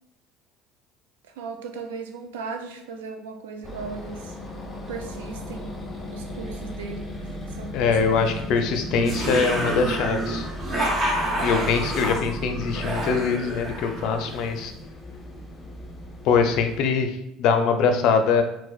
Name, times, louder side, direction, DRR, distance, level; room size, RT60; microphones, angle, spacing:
voice 1, 1.3-4.3 4.9-5.8 6.1-7.1 7.5-8.7, right 5 dB, 90° right, 5 dB, 0.4 m, -37 dB
sound 1, 3.6-16.8, equal, 15° left, 0.8 m, -36 dB
voice 2, 7.7-10.5 11.4-14.7 16.2-18.4, left 5 dB, 65° left, 6 dB, 0.4 m, -23 dB
sound 2, 8.9-14.5, right 1 dB, 30° right, 0.9 m, -28 dB
4.3 x 2.0 x 2.3 m, 0.86 s
supercardioid pair, 80°, 0 cm